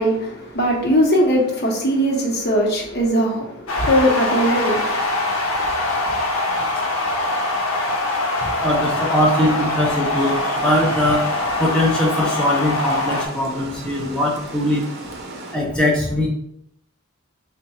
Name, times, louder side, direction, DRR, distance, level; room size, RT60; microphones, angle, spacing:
voice 1, 0.0-5.0, equal, 50° left, 0.9 m, -19 dB
sound 1, 3.7-13.3, left 2 dB, 80° left, 0.8 m, -23 dB
voice 2, 8.4-11.2 11.6-14.8 15.5-16.3, left 1 dB, 5° left, 0.5 m, -21 dB
Water, 10.2-15.6, right 2 dB, 50° right, 0.6 m, -36 dB
3.6 x 2.2 x 4.2 m
head